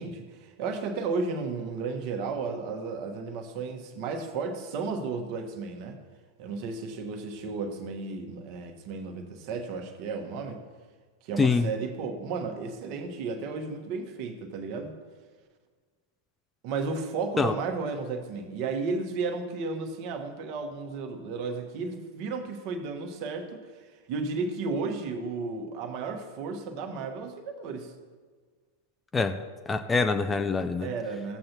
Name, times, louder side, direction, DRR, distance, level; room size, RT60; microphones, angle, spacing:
voice 1, 0.0-6.0 6.4-10.6 11.2-14.9 16.6-27.9 30.8-31.4, right 4 dB, 45° right, 1.2 m, -33 dB
voice 2, 11.4-11.7 17.4-17.5 29.1-29.4 29.7-30.9, left 4 dB, 15° left, 0.4 m, -25 dB
15.5 x 7.7 x 2.9 m
figure-of-eight pair, 90°, 0 cm